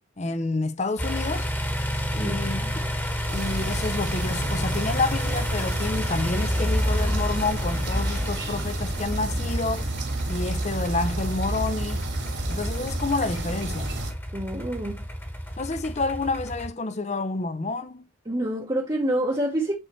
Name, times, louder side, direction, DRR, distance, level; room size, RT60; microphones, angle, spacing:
voice 1, 0.2-1.5 2.1-2.8 3.3-9.9 10.2-12.0 12.5-13.9 15.6-18.0, left 3 dB, 35° left, 0.6 m, -29 dB
sound 1, 1.0-16.7, equal, 10° left, 1.3 m, -30 dB
voice 2, 2.2-2.8 14.3-15.0 18.3-19.8, right 1 dB, 20° right, 1.0 m, -27 dB
sound 2, 3.3-14.1, right 1 dB, 70° right, 2.6 m, -31 dB
8.8 x 4.2 x 3.1 m
head